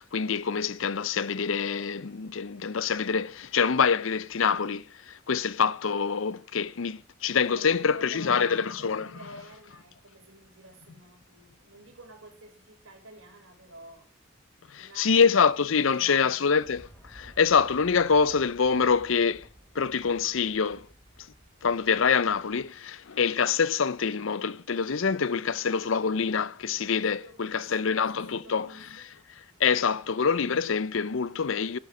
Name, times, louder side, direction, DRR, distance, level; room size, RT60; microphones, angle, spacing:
voice 1, 0.0-9.1 14.7-19.5 19.7-20.9 21.6-28.7 29.6-31.8, left 6 dB, 70° left, 0.6 m, -25 dB
voice 2, 7.5-14.1 14.7-16.6 27.1-29.1, right 2 dB, 75° right, 4.4 m, -50 dB
sound 1, 16.6-22.8, equal, 10° left, 4.4 m, -54 dB
13.0 x 12.0 x 5.0 m
head